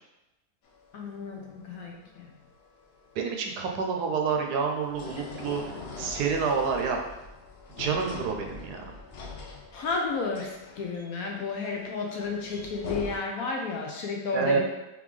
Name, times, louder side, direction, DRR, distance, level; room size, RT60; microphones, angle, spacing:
sound 1, 0.6-13.2, left 4 dB, 85° left, 0.5 m, -43 dB
voice 1, 0.9-2.3 9.7-14.6, left 4 dB, 65° left, 0 dB, 1.0 m, -32 dB
voice 2, 3.2-7.0 7.8-8.8 14.3-14.6, right 5 dB, 75° right, 2 dB, 1.1 m, -28 dB
3.6 x 3.6 x 3.2 m, 0.98 s
omnidirectional pair, 1.8 m